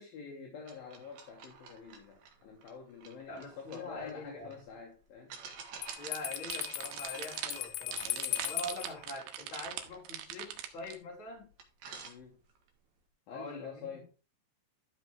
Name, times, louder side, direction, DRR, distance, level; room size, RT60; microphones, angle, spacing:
voice 1, 0.0-5.3 7.9-8.5 12.0-12.4 13.3-14.1, left 6 dB, 65° left, 2.8 m, -47 dB
sound 1, 0.7-4.6 5.3-10.9 11.3-11.4 11.6-12.7, right 6 dB, 65° right, 3.0 m, -52 dB
voice 2, 3.3-4.5 6.0-8.1 8.4-11.5 13.3-13.9, left 2 dB, 30° left, 3.4 m, -44 dB
Bell, 5.8-8.9, left 18 dB, 85° left, 2.4 m, -38 dB
sound 2, 5.9-11.0, right 11 dB, 85° right, 3.3 m, -41 dB
12.5 x 6.0 x 3.5 m
omnidirectional pair, 5.1 m